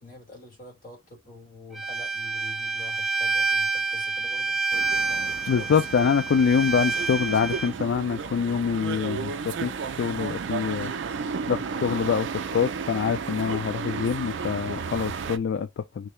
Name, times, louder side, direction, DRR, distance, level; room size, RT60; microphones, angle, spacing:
voice 1, 0.0-4.6, left 2 dB, 40° left, 1.6 m, -46 dB
Bowed string instrument, 1.7-7.7, right 4 dB, 5° right, 0.5 m, -28 dB
sound 1, 4.7-15.4, right 5 dB, 60° right, 0.4 m, -33 dB
voice 2, 5.5-9.7 10.0-10.9 11.5-16.1, left 6 dB, 60° left, 0.3 m, -25 dB
3.3 x 2.7 x 3.1 m
head